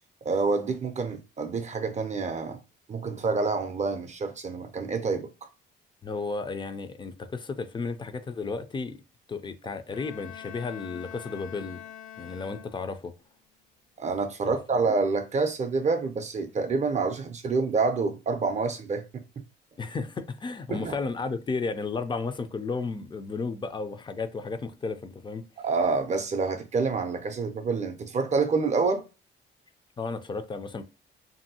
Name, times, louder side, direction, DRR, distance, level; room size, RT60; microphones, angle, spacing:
voice 1, 0.2-2.6 2.9-5.3 14.0-19.2 20.7-21.0 25.6-29.0, right 4 dB, 35° right, 0.4 m, -27 dB
voice 2, 6.0-9.0 9.3-11.8 12.2-13.1 14.4-14.6 19.8-25.4 30.0-30.8, left 4 dB, 25° left, 0.4 m, -33 dB
Bowed string instrument, 9.9-13.1, left 11 dB, 85° left, 0.5 m, -45 dB
2.6 x 2.6 x 2.7 m
cardioid pair, 90°, 20 cm